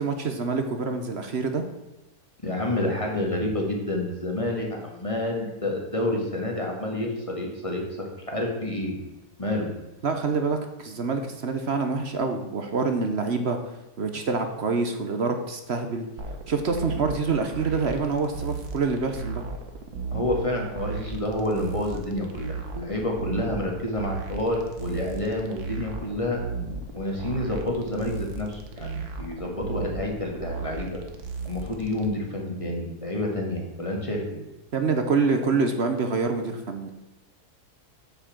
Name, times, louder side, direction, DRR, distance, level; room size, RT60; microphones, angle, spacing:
voice 1, 0.0-1.6 10.0-13.6 14.0-16.1 16.5-19.4 34.7-36.9, right 4 dB, 50° right, 6 dB, 1.0 m, -26 dB
voice 2, 2.4-9.0 9.4-9.7 20.1-26.4 26.9-31.0 31.4-34.4, left 1 dB, 20° left, 0 dB, 2.0 m, -29 dB
sound 1, 16.2-32.1, right 4 dB, 70° right, 1.6 m, -36 dB
8.4 x 5.7 x 7.5 m, 1.0 s
omnidirectional pair, 1.7 m